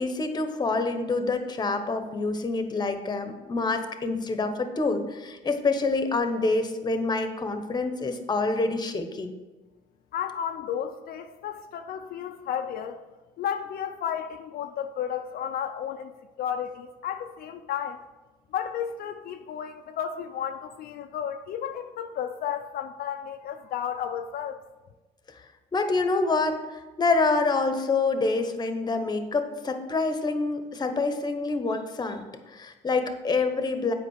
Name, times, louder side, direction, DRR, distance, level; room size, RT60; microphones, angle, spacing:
voice 1, 0.0-9.3 25.7-32.2 32.5-33.9, left 3 dB, 25° left, 8 dB, 0.9 m, -27 dB
voice 2, 10.1-13.0 13.4-16.1 16.4-18.0 18.5-24.6, left 9 dB, 65° left, 5 dB, 0.5 m, -33 dB
8.3 x 5.1 x 6.4 m, 1.2 s
cardioid pair, 110°, 17 cm